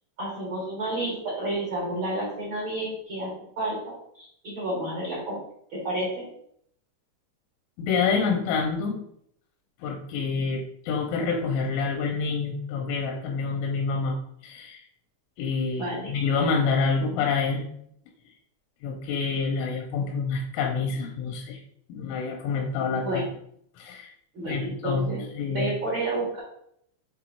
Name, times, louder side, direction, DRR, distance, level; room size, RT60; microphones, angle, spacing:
voice 1, 0.2-5.4 5.7-6.3 15.8-16.1 22.9-23.3 24.3-25.2 25.5-26.4, right 1 dB, 60° right, -5 dB, 1.3 m, -30 dB
voice 2, 7.8-9.0 9.8-14.2 14.4-14.8 15.4-17.7 18.8-21.6 21.9-23.2 23.8-24.1 24.5-25.7, left 5 dB, 85° left, 1 dB, 3.4 m, -27 dB
7.4 x 3.1 x 4.7 m, 0.68 s
omnidirectional pair, 5.6 m